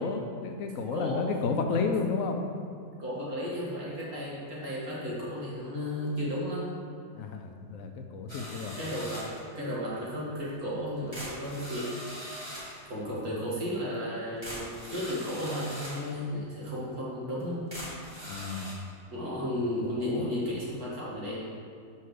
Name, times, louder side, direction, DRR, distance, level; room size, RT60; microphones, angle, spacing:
voice 1, 0.0-2.4 7.1-8.8 18.2-18.8 19.8-20.3, left 4 dB, 65° left, 5 dB, 1.0 m, -32 dB
voice 2, 0.9-1.4 1.7-1.8 3.0-6.7 8.8-12.0 12.9-17.7 19.1-21.4, equal, 65° right, -7 dB, 2.4 m, -34 dB
sound 1, 8.3-9.5 10.5-10.6 11.1-12.8 13.9-14.0 14.4-16.1 16.7-16.8 17.4-17.5 17.7-18.7, equal, 15° right, 1.6 m, -41 dB
5.6 x 5.4 x 6.5 m, 2.3 s
omnidirectional pair, 1.7 m